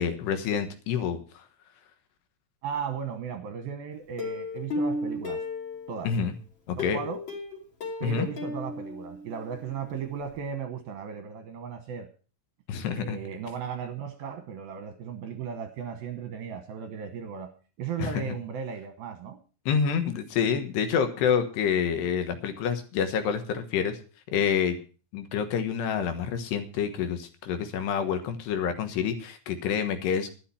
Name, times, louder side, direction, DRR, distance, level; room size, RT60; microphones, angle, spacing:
voice 1, 0.0-1.4 6.0-6.3 6.7-7.0 8.0-8.3 12.7-13.2 18.0-18.2 19.7-24.0 24.3-24.8 25.1-30.3, left 7 dB, 70° left, 8 dB, 3.1 m, -28 dB
voice 2, 2.6-5.4 5.9-6.1 6.8-7.2 8.0-12.1 12.9-17.5 17.8-19.4, right 7 dB, 70° right, 7 dB, 2.4 m, -36 dB
Plucked string instrument, 4.2-6.2 6.8-9.6 9.9-10.0 10.3-10.4, left 2 dB, 30° left, 2.5 m, -34 dB
12.5 x 10.5 x 5.7 m, 0.37 s
omnidirectional pair, 5.4 m